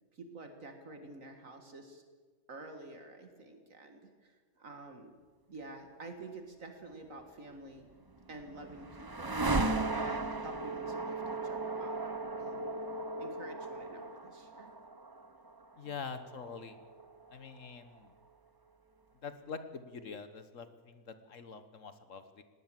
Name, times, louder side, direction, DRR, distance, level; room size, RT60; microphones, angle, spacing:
voice 1, 0.1-2.0 2.5-5.1 5.5-7.9 8.3-9.4 9.9-12.0 12.4-12.8 13.2-14.7 15.8-16.0, right 2 dB, 55° right, 5 dB, 2.1 m, -49 dB
sound 1, 7.9-18.0, right 2 dB, 20° right, 0.6 m, -37 dB
voice 2, 15.8-16.8 17.3-18.1 19.2-22.4, left 5 dB, 55° left, 10 dB, 1.5 m, -45 dB
19.5 x 18.0 x 7.5 m, 1.5 s
omnidirectional pair, 1.7 m